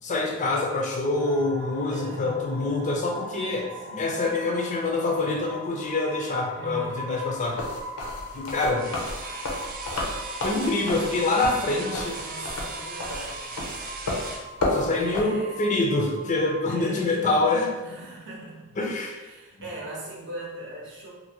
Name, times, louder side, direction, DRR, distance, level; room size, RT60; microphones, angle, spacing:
voice 1, 0.0-3.7 4.0-7.6 8.3-8.8 10.4-12.2 14.7-17.7 18.8-19.2 19.6-19.7, left 2 dB, 35° left, 0 dB, 0.4 m, -26 dB
sound 1, 1.1-17.8, left 1 dB, 20° right, 0.8 m, -40 dB
voice 2, 1.9-2.5 2.8-3.3 3.9-4.6 6.5-7.1 8.2-8.3 11.6-13.6 14.9-15.9 16.7-17.1 17.8-18.8 19.2-21.1, right 1 dB, 55° right, -3 dB, 0.7 m, -41 dB
sound 2, 7.4-15.2, left 2 dB, 85° left, 0.6 m, -31 dB
sound 3, 8.8-14.5, right 4 dB, 40° right, 0.3 m, -38 dB
2.6 x 2.5 x 2.8 m, 1.2 s
head